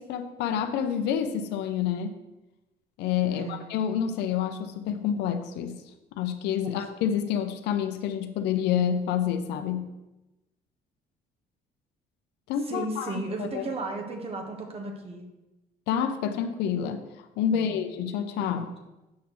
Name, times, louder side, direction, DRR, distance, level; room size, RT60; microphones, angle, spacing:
voice 1, 0.0-2.1 3.0-5.8 6.1-9.9 12.5-13.7 15.9-17.0 17.4-18.7, left 8 dB, 85° left, 7 dB, 0.6 m, -28 dB
voice 2, 3.3-3.6 6.6-6.8 12.7-15.3 17.5-17.8 18.3-18.6, right 2 dB, 35° right, 4 dB, 1.3 m, -35 dB
8.3 x 6.1 x 3.1 m, 1.0 s
cardioid pair, 110°, 17 cm